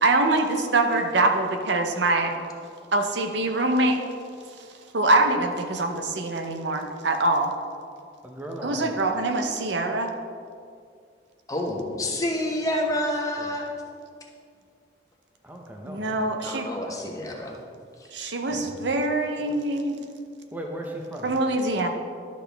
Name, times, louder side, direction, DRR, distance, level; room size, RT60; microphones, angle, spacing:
voice 1, 0.0-2.3 2.9-4.0 4.9-7.5 8.6-10.1 15.8-16.7 18.1-20.0 21.2-21.9, right 2 dB, 70° right, 5 dB, 0.8 m, -24 dB
voice 2, 8.2-9.0 13.4-13.8 15.4-16.3 19.4-19.6 20.5-21.3, right 1 dB, 10° right, 1 dB, 0.6 m, -37 dB
voice 3, 11.5-13.7 16.4-17.5 18.5-18.6, left 1 dB, 20° left, -1 dB, 1.0 m, -28 dB
11.5 x 6.2 x 3.4 m, 2.3 s
head